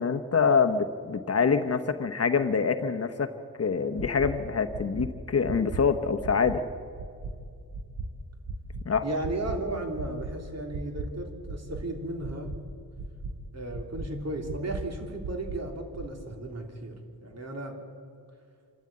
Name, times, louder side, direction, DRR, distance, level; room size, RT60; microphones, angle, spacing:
voice 1, 0.0-3.3 3.6-6.6 8.8-9.0, left 5 dB, 45° left, 7 dB, 1.0 m, -25 dB
sound 1, 4.0-4.3 4.7-5.0 5.5-5.8 6.2-6.5 7.0-7.3 7.7-8.0 8.5-8.8 9.2-9.5 10.0-10.3 10.7-11.0 11.5-11.8 12.2-12.5 13.0-13.3 13.7-14.1 14.5-14.8 15.2-15.6 16.0-16.1, right 4 dB, 80° right, 4.0 m, -35 dB
voice 2, 9.0-12.5 13.5-17.8, right 1 dB, 45° right, 2 dB, 3.2 m, -35 dB
26.5 x 13.0 x 8.8 m, 2.3 s
wide cardioid pair, 120°, 35 cm